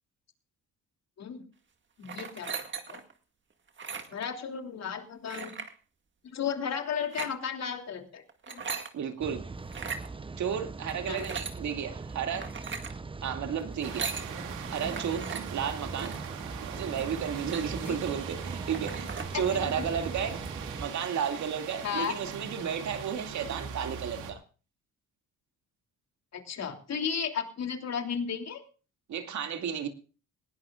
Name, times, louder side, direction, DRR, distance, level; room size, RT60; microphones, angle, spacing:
voice 1, 2.0-2.6 2.9-3.0 4.1-5.5 6.3-8.6 11.1-11.3 17.9-18.0 19.3-19.4 21.8-22.1 26.3-28.6, left 7 dB, 60° left, 4 dB, 3.1 m, -34 dB
sound 1, 2.0-3.1 3.7-4.3 5.3-5.7 6.9-7.3 8.3-8.9 9.6-10.1 10.9-11.6 12.3-12.9 13.7-14.3 14.9-15.4 15.9-16.3 16.8-16.9 17.2-18.0 18.4-18.5 18.7-19.3, right 5 dB, 40° right, 2.1 m, -38 dB
voice 2, 8.9-9.4 10.4-12.5 13.2-14.1 14.7-16.1 16.7-20.4 20.8-24.4 29.1-29.9, right 8 dB, 70° right, 5 dB, 2.5 m, -33 dB
Rain, 9.2-20.9, right 3 dB, 15° right, 0.8 m, -40 dB
sound 2, 13.8-24.3, right 7 dB, 85° right, 2.5 m, -41 dB
20.0 x 16.5 x 2.5 m, 0.36 s
cardioid pair, 90°, 30 cm